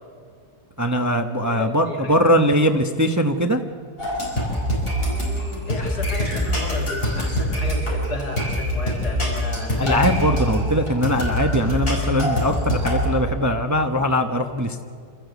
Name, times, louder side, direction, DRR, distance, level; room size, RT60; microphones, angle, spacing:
voice 1, 0.8-3.6 9.8-14.8, equal, 15° right, 5 dB, 0.8 m, -21 dB
voice 2, 1.4-2.8 5.0-10.2, left 2 dB, 85° left, 0 dB, 2.8 m, -33 dB
sound 1, 4.0-13.0, equal, 35° left, 5.9 m, -24 dB
27.0 x 14.0 x 8.2 m, 2.3 s
omnidirectional pair, 1.6 m